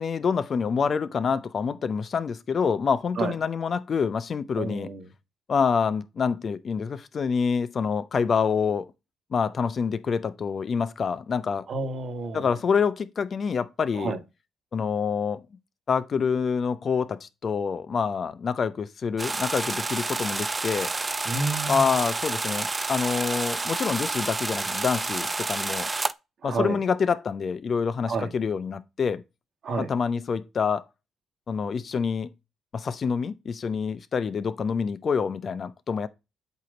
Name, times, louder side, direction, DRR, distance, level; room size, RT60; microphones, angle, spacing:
voice 1, 0.0-4.9 5.5-8.9 9.3-11.6 12.3-14.2 14.7-15.4 15.9-20.9 21.7-25.9 26.4-29.2 29.8-30.8 31.5-32.3 32.7-36.1, left 6 dB, 45° left, 0.6 m, -27 dB
voice 2, 4.6-5.0 11.7-12.4 14.0-14.2 21.2-21.9 26.4-26.8 28.1-28.3 29.6-29.9, right 3 dB, 55° right, 1.2 m, -29 dB
sound 1, 19.2-26.1, right 3 dB, 20° right, 0.4 m, -29 dB
8.1 x 2.9 x 5.1 m
cardioid pair, 90°, 0 cm